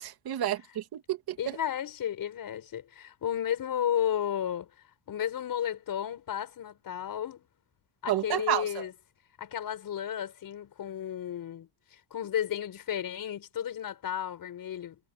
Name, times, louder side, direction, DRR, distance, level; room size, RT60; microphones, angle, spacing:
voice 1, 0.0-1.4 8.1-8.8, right 11 dB, 50° right, 2.9 m, -30 dB
voice 2, 1.4-4.7 5.1-7.5 8.0-8.9 9.4-15.0, left 10 dB, 45° left, 6.5 m, -33 dB
cardioid pair, 150°, 47 cm